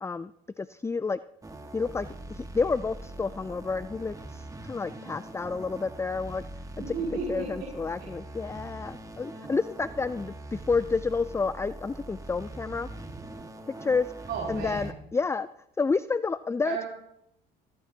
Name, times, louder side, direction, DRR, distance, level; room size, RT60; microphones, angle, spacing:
voice 1, 0.0-0.3 0.6-1.2 1.7-4.4 4.7-6.4 7.3-12.9 13.8-14.1 14.5-15.5 15.8-16.9, left 4 dB, 15° left, 14 dB, 0.4 m, -29 dB
sound 1, 1.4-14.9, right 2 dB, 15° right, 1.6 m, -42 dB
voice 2, 6.8-7.7 14.3-14.9 16.6-16.9, right 5 dB, 55° right, -3 dB, 5.3 m, -33 dB
18.0 x 15.5 x 2.8 m, 0.79 s
supercardioid pair, 75°, 21 cm